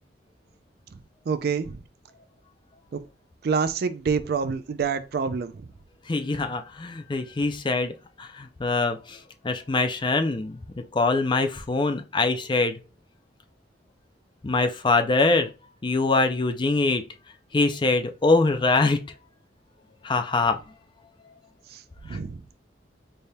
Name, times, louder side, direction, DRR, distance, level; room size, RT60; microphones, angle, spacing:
voice 1, 1.3-1.8 2.9-3.0 3.4-5.7 21.7-22.4, right 5 dB, 55° right, 0.4 m, -27 dB
voice 2, 6.1-12.8 14.4-15.5 15.8-17.0 17.5-19.0 20.0-20.6 22.1-22.2, left 3 dB, 25° left, 0.4 m, -24 dB
4.1 x 3.3 x 2.2 m
head